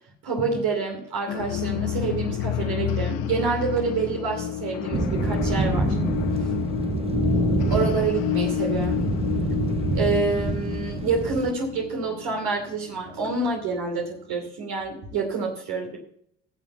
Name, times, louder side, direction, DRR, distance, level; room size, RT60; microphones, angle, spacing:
voice 1, 0.2-6.0 6.4-6.6 7.7-9.0 9.9-16.0, right 4 dB, 75° right, 0 dB, 2.9 m, -27 dB
sound 1, 1.3-13.8, left 11 dB, 90° left, 1.0 m, -29 dB
sound 2, 4.9-11.5, right 5 dB, 15° right, 0.4 m, -27 dB
11.5 x 7.1 x 5.8 m, 0.66 s
supercardioid pair, 70°, 37 cm